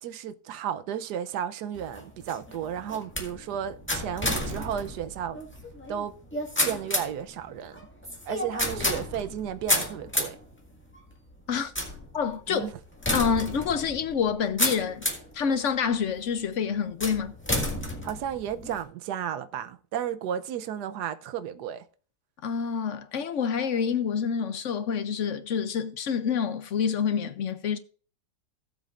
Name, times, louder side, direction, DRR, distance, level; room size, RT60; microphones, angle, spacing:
voice 1, 0.0-5.4 5.9-6.1 6.6-7.9 8.3-10.4 12.5-12.7 18.0-21.8, right 9 dB, 80° right, 1.3 m, -33 dB
sound 1, 1.7-15.4 15.9-16.4 17.0-18.8, left 1 dB, 5° left, 1.7 m, -31 dB
voice 2, 12.1-12.7 13.1-15.0 15.3-17.3 22.4-27.8, left 7 dB, 60° left, 0.8 m, -27 dB
17.0 x 7.6 x 2.5 m
omnidirectional pair, 1.7 m